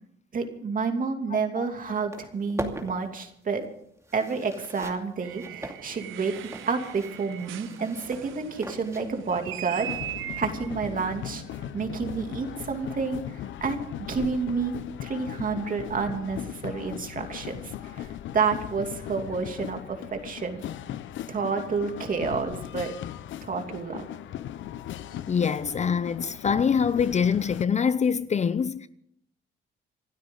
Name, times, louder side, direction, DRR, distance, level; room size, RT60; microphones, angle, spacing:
voice 1, 0.3-3.6 4.1-6.3 6.7-9.9 10.4-11.4 11.7-14.7 15.0-20.6 21.3-22.9 23.4-24.1, right 5 dB, 45° right, 2.8 m, -29 dB
sound 1, 1.6-1.7 1.9-9.4, right 1 dB, 15° right, 2.6 m, -41 dB
sound 2, 5.2-12.9, right 12 dB, 85° right, 0.9 m, -41 dB
sound 3, 9.7-27.6, left 11 dB, 75° left, 0.8 m, -38 dB
voice 2, 25.3-28.9, left 6 dB, 35° left, 0.6 m, -24 dB
27.0 x 12.5 x 4.0 m
cardioid pair, 90°, 20 cm